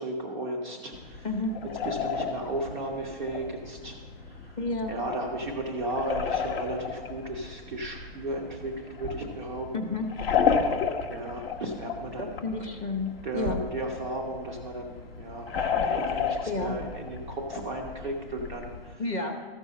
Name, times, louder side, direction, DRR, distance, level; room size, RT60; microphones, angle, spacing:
voice 1, 0.0-1.3 1.8-4.0 4.2-4.6 4.9-10.0 11.1-12.4 13.2-15.5 15.8-19.0, right 1 dB, ahead, -11 dB, 0.3 m, -35 dB
sound 1, 0.9-18.9, left 6 dB, 65° left, 1.2 m, -33 dB
voice 2, 4.6-5.0 9.7-10.0 12.2-13.6 16.5-16.7 19.0-19.5, left 3 dB, 15° left, 4 dB, 0.8 m, -31 dB
14.0 x 5.4 x 7.3 m, 1.4 s
hypercardioid pair, 165°, 30 cm